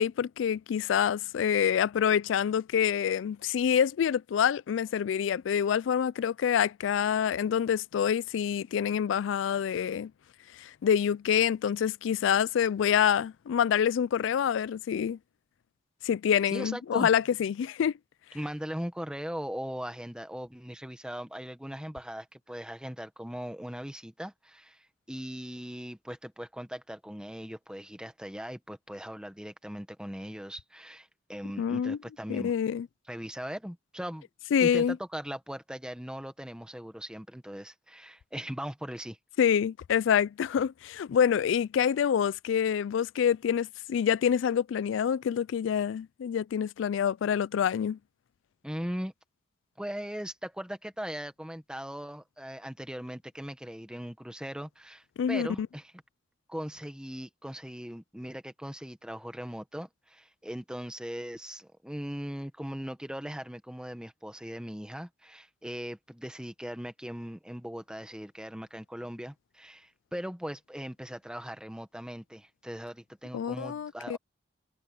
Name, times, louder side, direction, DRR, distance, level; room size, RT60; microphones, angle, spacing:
voice 1, 0.0-10.1 10.6-15.2 16.0-17.9 31.6-32.0 32.3-32.9 34.5-35.0 39.4-48.0 55.2-55.7 73.3-74.2, left 8 dB, 75° left, 0.3 m, -26 dB
voice 2, 16.5-17.1 18.3-32.5 33.1-34.3 34.6-39.2 48.6-49.1 49.8-55.9 56.5-74.2, equal, 5° right, 1.4 m, -39 dB
head